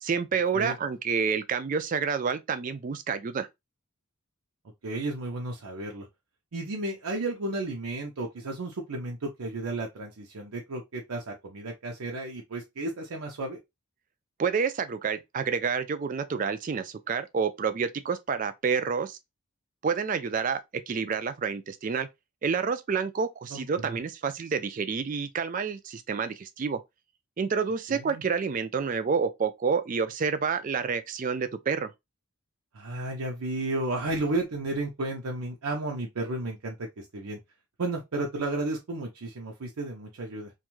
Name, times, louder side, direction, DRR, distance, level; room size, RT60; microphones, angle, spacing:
voice 1, 0.0-3.5 14.4-19.2 19.8-20.6 20.9-22.1 22.4-26.8 27.4-31.9, right 5 dB, 35° right, 0.3 m, -29 dB
voice 2, 4.8-6.1 6.5-13.6 23.5-24.0 27.9-28.2 32.7-37.4 37.8-40.5, right 2 dB, 85° right, 0.6 m, -33 dB
2.5 x 2.3 x 3.0 m
head